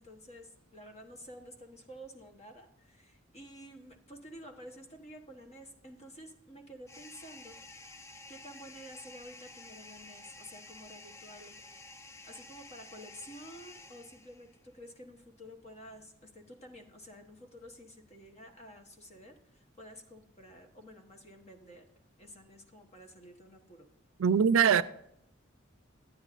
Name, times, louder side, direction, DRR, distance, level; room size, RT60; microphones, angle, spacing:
voice 1, 0.0-7.6 8.3-11.6 12.2-21.9 22.2-23.9, equal, 35° left, 1.1 m, -51 dB
sound 1, 6.9-14.6, left 2 dB, 15° left, 0.4 m, -51 dB
voice 2, 24.2-24.8, right 7 dB, 75° right, 0.4 m, -22 dB
11.0 x 9.4 x 2.5 m
head